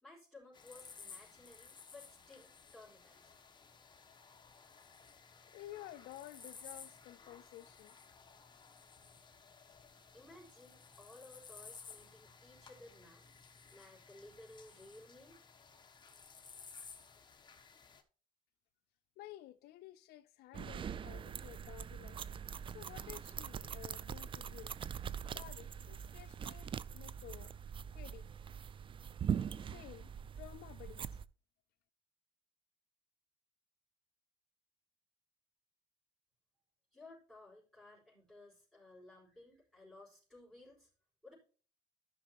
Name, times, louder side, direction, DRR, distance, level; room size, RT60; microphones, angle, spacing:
voice 1, 0.0-3.2 10.1-13.3 13.7-15.4 36.9-40.9 41.2-41.3, left 2 dB, ahead, 4.9 m, -57 dB
sound 1, 0.5-18.0, left 5 dB, 25° left, 1.3 m, -56 dB
voice 2, 5.5-8.0 19.2-22.2 22.7-24.7 25.3-27.5 27.9-28.3 29.7-31.1, left 14 dB, 70° left, 0.4 m, -53 dB
sound 2, 20.5-31.2, right 8 dB, 30° right, 0.3 m, -42 dB
13.5 x 5.8 x 2.9 m
cardioid pair, 110°, 17 cm